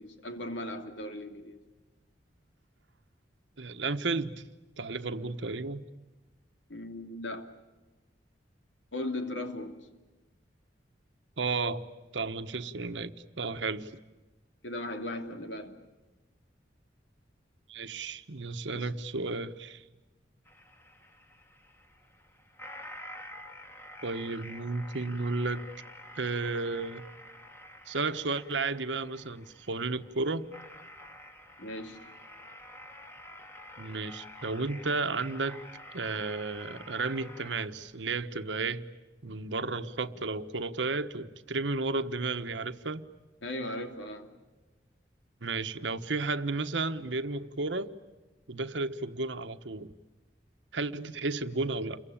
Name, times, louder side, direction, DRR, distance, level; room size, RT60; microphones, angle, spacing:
voice 1, 0.0-1.6 6.7-7.5 8.9-9.9 14.6-15.8 18.7-18.9 31.6-32.1 39.3-39.4 43.4-44.3, left 1 dB, 85° left, 2.9 m, -38 dB
voice 2, 3.6-4.4 4.8-5.8 11.4-11.8 12.1-13.9 17.7-19.8 24.0-25.6 26.2-27.1 27.9-30.5 33.8-35.6 35.9-38.8 39.2-43.1 45.4-47.9 48.5-49.9 50.7-52.0, right 3 dB, 80° right, 1.2 m, -33 dB
sound 1, 20.5-37.7, left 1 dB, 15° left, 2.0 m, -49 dB
28.5 x 23.0 x 8.8 m
head